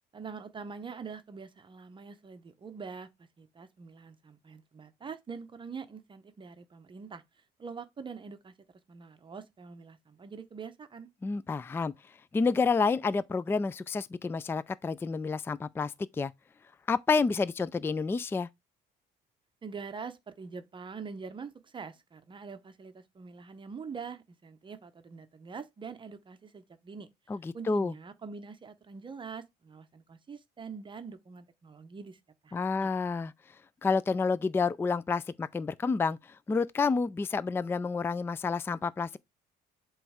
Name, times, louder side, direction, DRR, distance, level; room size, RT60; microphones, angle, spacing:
voice 1, 0.1-8.5 8.9-11.1 19.6-27.1 27.5-32.9, right 5 dB, 30° right, 0.8 m, -44 dB
voice 2, 11.2-11.9 12.3-16.3 16.9-18.5 27.3-27.9 32.5-33.3 33.8-39.2, left 4 dB, 15° left, 0.3 m, -29 dB
7.7 x 3.1 x 4.9 m
cardioid pair, 110°, 17 cm